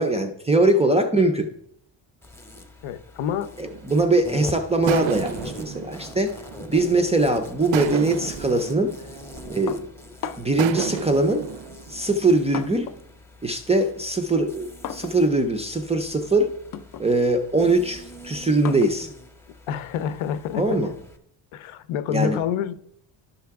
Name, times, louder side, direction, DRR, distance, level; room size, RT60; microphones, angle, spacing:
voice 1, 0.0-1.5 3.6-6.4 6.7-8.9 9.5-9.9 10.4-11.5 11.9-12.9 13.4-16.5 17.0-19.1 20.6-20.9 22.1-22.4, right 2 dB, 15° right, 0.3 m, -22 dB
Insect, 2.2-21.2, left 1 dB, 5° left, 0.7 m, -41 dB
voice 2, 2.8-3.5 19.7-20.8 21.5-22.7, left 8 dB, 75° left, 0.7 m, -27 dB
sound 1, 3.6-4.3 4.9-7.1 7.7-10.0 10.6-12.8, right 11 dB, 70° right, 0.5 m, -33 dB
sound 2, 9.7-10.7 11.6-13.1 13.4-20.8, left 8 dB, 45° left, 0.5 m, -40 dB
11.5 x 5.6 x 3.5 m
cardioid pair, 160°, 48 cm